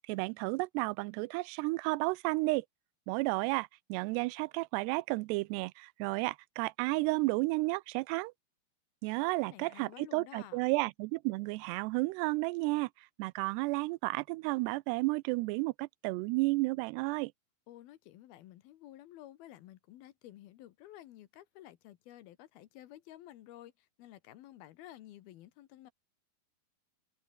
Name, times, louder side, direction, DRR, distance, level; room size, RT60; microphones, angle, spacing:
voice 1, 0.1-2.7 3.1-8.3 9.0-12.9 13.2-17.3, right 24 dB, 90° right, 2.6 m, -32 dB
voice 2, 9.4-10.6 17.7-25.9, left 14 dB, 75° left, 2.9 m, -52 dB
omnidirectional pair, 4.7 m